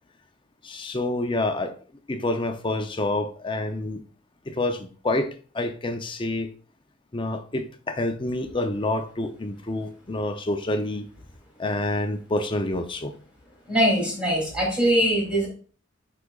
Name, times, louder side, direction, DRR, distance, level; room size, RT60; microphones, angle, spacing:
voice 1, 0.6-1.7 2.1-4.0 4.5-6.5 7.1-11.1 11.6-13.2, left 2 dB, 25° left, 0.5 m, -28 dB
voice 2, 13.7-15.5, equal, 5° right, 2.7 m, -22 dB
8.2 x 5.0 x 2.3 m
head